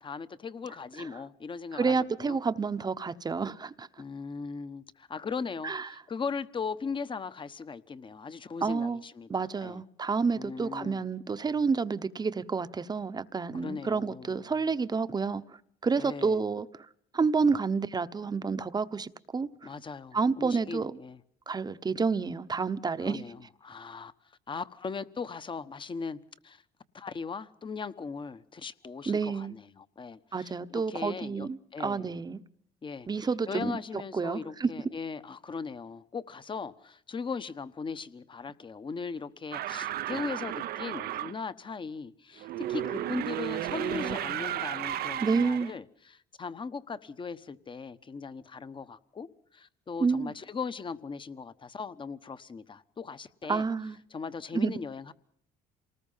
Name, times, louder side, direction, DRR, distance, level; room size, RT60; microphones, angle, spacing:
voice 1, 0.0-2.4 4.0-9.8 10.3-11.0 13.5-14.4 16.0-16.5 19.6-21.2 23.0-24.1 24.5-26.2 26.4-26.6 26.9-32.1 32.8-53.7 54.1-55.1, left 5 dB, 30° left, 1.1 m, -39 dB
voice 2, 1.7-3.9 5.6-5.9 8.6-9.0 9.3-15.4 15.8-16.7 17.1-19.5 20.1-20.9 21.5-23.2 29.1-29.5 30.3-32.4 33.1-33.7 34.1-34.7 45.2-45.7 50.0-50.3 53.5-54.0 54.5-54.7, right 4 dB, 25° right, 1.0 m, -29 dB
sound 1, 39.5-41.4 42.4-45.7, right 12 dB, 65° right, 0.8 m, -34 dB
27.5 x 19.5 x 5.7 m
cardioid pair, 110°, 17 cm